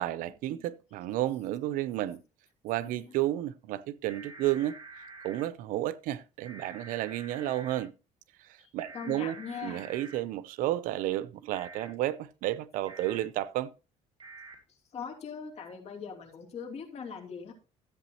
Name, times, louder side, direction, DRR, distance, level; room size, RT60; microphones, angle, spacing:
voice 1, 0.0-2.2 2.6-4.8 5.2-7.9 8.4-9.4 9.6-13.7, right 14 dB, 85° right, 0.6 m, -32 dB
sound 1, 4.1-5.4 6.4-7.8 8.8-10.2 11.5-11.9 12.9-13.2 14.2-14.6, right 3 dB, 35° right, 2.8 m, -47 dB
voice 2, 8.6-9.9 14.7-17.5, left 6 dB, 50° left, 2.9 m, -41 dB
13.5 x 8.3 x 2.9 m
cardioid pair, 125°, 14 cm